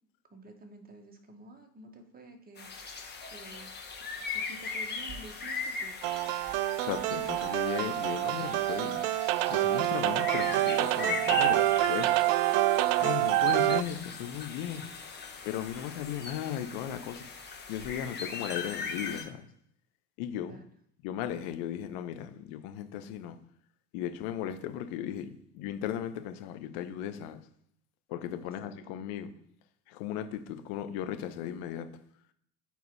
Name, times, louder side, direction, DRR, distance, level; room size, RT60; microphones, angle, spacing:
voice 1, 0.3-2.7 3.3-3.7 4.3-6.0 20.4-20.6 28.4-29.0, right 2 dB, 20° right, 1.7 m, -50 dB
sound 1, 2.6-19.2, left 4 dB, 20° left, 1.8 m, -39 dB
sound 2, 6.0-13.8, right 16 dB, 55° right, 0.5 m, -27 dB
voice 2, 6.8-9.0 9.5-12.1 13.0-14.9 15.4-17.2 17.7-19.4 20.2-20.6 21.0-23.4 23.9-27.4 28.1-29.3 29.9-31.9, left 10 dB, 55° left, 1.1 m, -36 dB
sound 3, 10.4-16.3, left 8 dB, 80° left, 1.3 m, -52 dB
6.3 x 4.5 x 5.5 m
hypercardioid pair, 85°, 47 cm